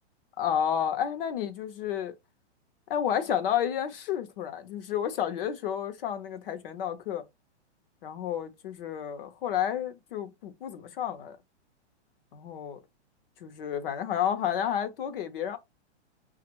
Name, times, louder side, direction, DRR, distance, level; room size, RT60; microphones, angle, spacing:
voice 1, 0.4-2.1 2.9-7.2 8.0-11.4 12.3-12.8 13.4-15.6, left 9 dB, 55° left, 0.9 m, -31 dB
5.8 x 2.5 x 3.0 m
hypercardioid pair, 155°, 34 cm